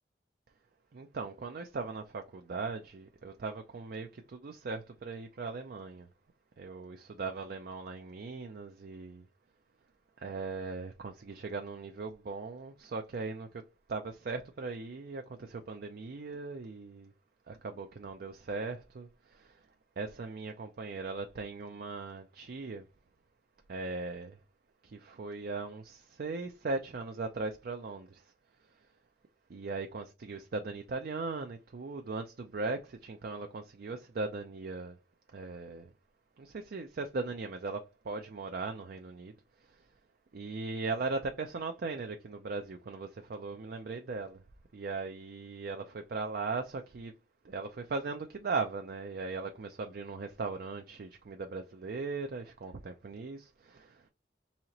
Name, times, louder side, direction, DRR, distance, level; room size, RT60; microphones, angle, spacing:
voice 1, 0.9-6.1 6.6-9.2 10.2-13.6 13.9-17.1 17.5-19.6 20.0-22.9 23.7-24.4 24.8-28.3 29.5-35.0 35.3-35.9 36.4-39.3 39.7-39.8 40.3-44.4 44.7-47.1 47.4-54.1, right 3 dB, 55° right, 0.4 m, -39 dB
4.2 x 2.8 x 2.9 m
head